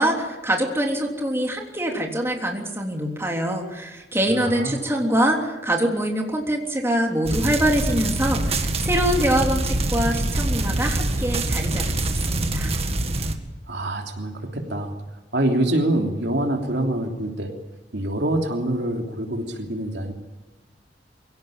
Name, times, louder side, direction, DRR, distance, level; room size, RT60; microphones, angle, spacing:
voice 1, 0.0-12.7, right 1 dB, 15° right, 1 dB, 3.3 m, -24 dB
voice 2, 4.3-4.9 13.7-14.9 15.3-17.5 17.9-20.1, right 1 dB, 70° right, 3 dB, 3.2 m, -25 dB
sound 1, 7.2-13.3, right 2 dB, 35° right, 2.0 m, -24 dB
23.5 x 17.0 x 9.2 m, 1.2 s
head